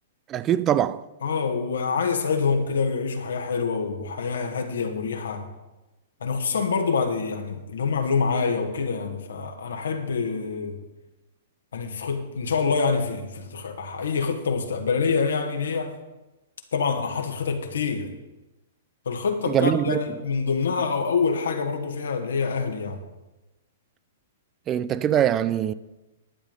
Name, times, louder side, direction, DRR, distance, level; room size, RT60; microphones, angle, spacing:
voice 1, 0.3-1.0 19.5-20.0 24.7-25.7, right 10 dB, 25° right, 0.5 m, -22 dB
voice 2, 1.2-5.5 6.2-10.8 11.7-15.9 16.7-18.1 19.0-23.0, left 5 dB, 75° left, 1.6 m, -26 dB
11.5 x 8.9 x 5.3 m
hypercardioid pair, 115°, 0 cm